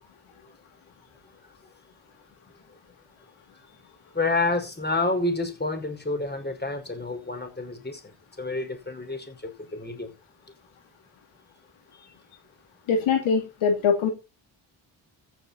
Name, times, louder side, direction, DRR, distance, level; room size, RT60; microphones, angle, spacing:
voice 1, 4.1-10.1 12.0-12.1, left 2 dB, 20° left, 5.4 m, -29 dB
voice 2, 12.9-14.1, left 6 dB, 75° left, 2.7 m, -22 dB
14.5 x 7.6 x 4.4 m
supercardioid pair, 50°, 48 cm